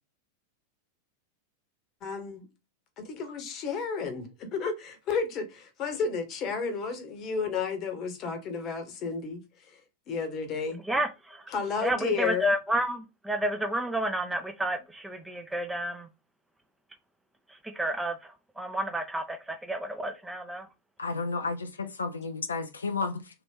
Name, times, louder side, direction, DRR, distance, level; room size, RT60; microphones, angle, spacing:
voice 1, 2.0-2.5 3.0-9.4 10.1-10.8 11.5-12.5, left 5 dB, 35° left, 1.0 m, -32 dB
voice 2, 10.8-11.5 11.8-16.1 17.5-20.7, right 1 dB, 5° right, 0.5 m, -31 dB
voice 3, 21.0-23.4, left 4 dB, 75° left, 0.4 m, -32 dB
2.8 x 2.5 x 3.5 m
figure-of-eight pair, 90°, 0 cm